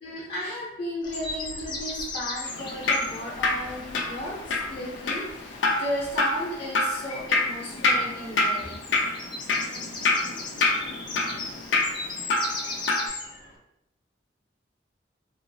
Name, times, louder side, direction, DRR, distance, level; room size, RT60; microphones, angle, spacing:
voice 1, 0.0-8.7, equal, 50° left, -7 dB, 0.8 m, -34 dB
sound 1, 1.0-13.5, left 3 dB, 25° left, 0.4 m, -38 dB
Drip, 2.5-13.1, left 3 dB, 90° left, 0.5 m, -27 dB
3.0 x 2.0 x 2.6 m, 0.83 s
head